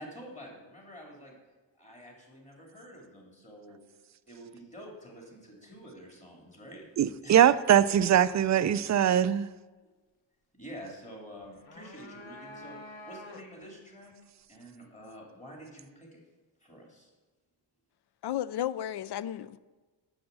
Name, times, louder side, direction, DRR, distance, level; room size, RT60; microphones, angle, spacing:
voice 1, 0.0-1.4 1.7-3.8 4.3-6.9 7.2-7.4 9.8-9.9 10.5-14.2 14.5-16.2 16.6-17.1, equal, 15° left, 3.0 m, -48 dB
voice 2, 7.0-9.5, right 10 dB, 40° right, 0.4 m, -22 dB
sound 1, 11.4-13.7, left 2 dB, 80° left, 1.0 m, -47 dB
voice 3, 18.2-19.6, left 11 dB, 60° left, 0.5 m, -33 dB
7.8 x 6.8 x 6.9 m
cardioid pair, 80°, 46 cm